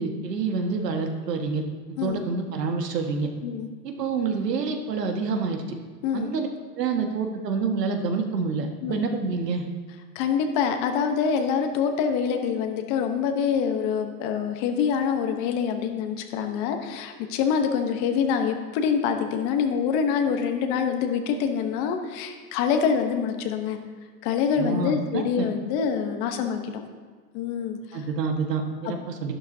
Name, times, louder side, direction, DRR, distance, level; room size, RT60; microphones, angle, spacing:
voice 1, 0.0-1.6 2.0-3.3 3.8-5.8 6.1-6.5 6.8-9.6 24.6-25.5 27.9-29.3, right 4 dB, 80° right, 4 dB, 1.7 m, -27 dB
voice 2, 10.1-23.8 24.2-26.8 27.3-28.0, left 7 dB, 30° left, 6 dB, 1.0 m, -25 dB
12.0 x 11.0 x 2.8 m, 1.5 s
hypercardioid pair, 135°, 48 cm